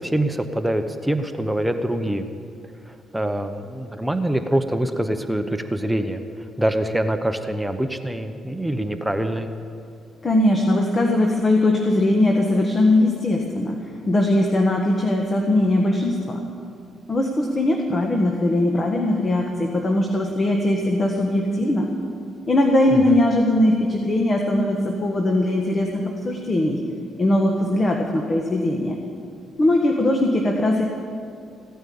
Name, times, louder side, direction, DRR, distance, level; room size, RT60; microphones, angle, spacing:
voice 1, 0.0-2.2 2.9-6.2 6.6-9.5 22.9-23.2, right 1 dB, 5° right, 7 dB, 0.9 m, -24 dB
voice 2, 10.2-16.4 17.1-21.9 22.5-26.8 27.2-29.0 29.6-30.8, left 1 dB, 30° left, 2 dB, 1.5 m, -20 dB
16.0 x 9.2 x 8.6 m, 2.4 s
cardioid pair, 90°, 0 cm